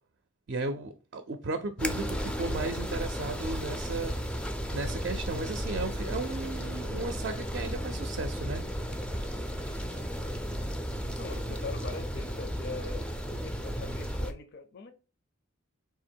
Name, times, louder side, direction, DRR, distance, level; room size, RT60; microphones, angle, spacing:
voice 1, 0.5-4.2 4.7-8.7, right 3 dB, 55° right, 0.5 m, -35 dB
Wind in Pines with Snow and ice Falling from Trees Figuried, 1.8-14.3, equal, 5° left, 0.4 m, -34 dB
voice 2, 11.2-13.0 13.4-14.9, left 3 dB, 55° left, 0.6 m, -42 dB
3.8 x 2.9 x 4.4 m
head